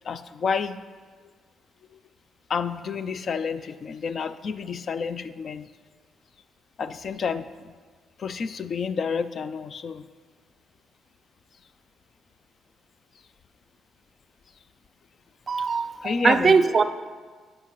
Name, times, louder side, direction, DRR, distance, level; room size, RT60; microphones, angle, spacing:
voice 1, 0.0-0.8 1.9-2.0 2.5-5.7 6.8-7.7 8.2-10.1 15.6-15.7 16.0-16.6, left 5 dB, 50° left, 13 dB, 0.3 m, -30 dB
voice 2, 15.5-16.8, right 5 dB, 40° right, 11 dB, 0.4 m, -21 dB
8.5 x 8.0 x 3.0 m, 1.5 s
cardioid pair, 90°, 0 cm